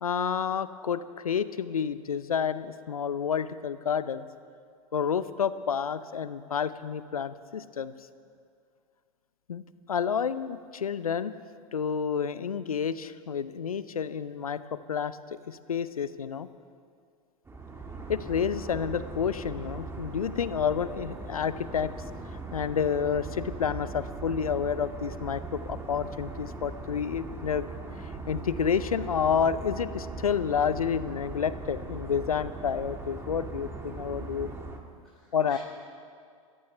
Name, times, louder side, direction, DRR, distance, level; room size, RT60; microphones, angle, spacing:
voice 1, 0.0-4.2 4.9-7.9 9.5-9.6 9.9-11.3 11.7-15.2 15.5-16.5 18.1-21.9 22.5-27.7 28.3-34.5 35.3-35.6, left 7 dB, 85° left, 14 dB, 0.6 m, -29 dB
sound 1, 17.5-34.8, right 3 dB, 15° right, 1.8 m, -40 dB
voice 2, 35.0-35.6, left 3 dB, 5° left, -10 dB, 5.3 m, -52 dB
26.0 x 14.5 x 3.3 m, 2.2 s
figure-of-eight pair, 90°, 18 cm